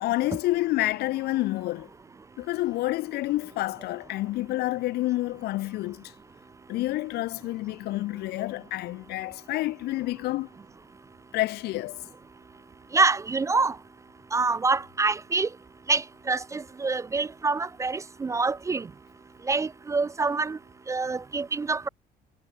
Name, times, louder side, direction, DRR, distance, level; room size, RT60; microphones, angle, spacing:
voice 1, 0.0-1.9 2.4-6.1 6.7-10.5 11.3-12.0, left 17 dB, 75° left, 0.5 m, -28 dB
voice 2, 12.9-13.8 14.3-15.5 15.9-18.9 19.5-20.6 20.9-21.9, right 4 dB, 20° right, 0.3 m, -26 dB
cardioid pair, 110°, 17 cm